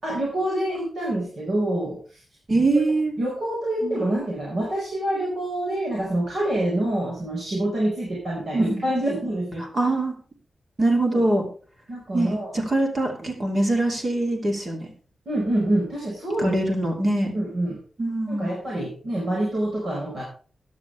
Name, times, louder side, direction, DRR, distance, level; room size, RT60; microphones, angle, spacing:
voice 1, 0.0-2.0 2.5-2.7 3.2-9.6 11.1-11.2 11.9-12.5 15.2-16.6 17.3-17.8 18.3-20.2, right 1 dB, 55° right, -3 dB, 4.9 m, -26 dB
voice 2, 2.5-3.1 3.8-4.0 8.5-8.8 9.6-10.2 10.8-11.5 12.1-14.9 16.4-17.3 18.0-18.6, right 2 dB, 35° right, 2 dB, 2.7 m, -23 dB
14.5 x 10.5 x 3.4 m, 0.40 s
wide cardioid pair, 180°, 0 cm